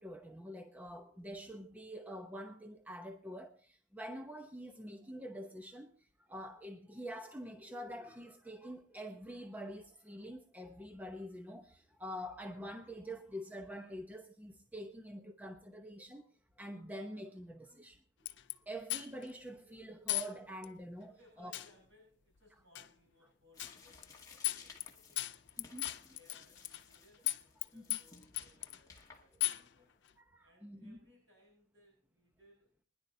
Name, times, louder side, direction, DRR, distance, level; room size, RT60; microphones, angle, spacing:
voice 1, 0.0-5.9 6.2-16.3 16.6-18.0 18.7-21.5 25.6-25.9 27.7-28.0 30.2-31.0, equal, 10° right, 0.8 m, -46 dB
sound 1, 18.3-18.5 18.9-19.3 20.1-20.3 20.6-20.7 21.5-21.7 22.7-22.9 23.6-23.8 24.0-24.1 24.4-24.9 25.2-27.0 27.3-27.6 27.9-28.8 29.4-29.7, left 18 dB, 70° left, 0.5 m, -36 dB
voice 2, 21.1-25.2 25.8-29.9 30.4-32.7, left 1 dB, 90° right, 6.2 m, -67 dB
sound 2, 23.5-29.9, left 4 dB, 20° left, 2.0 m, -59 dB
24.0 x 10.5 x 2.7 m
head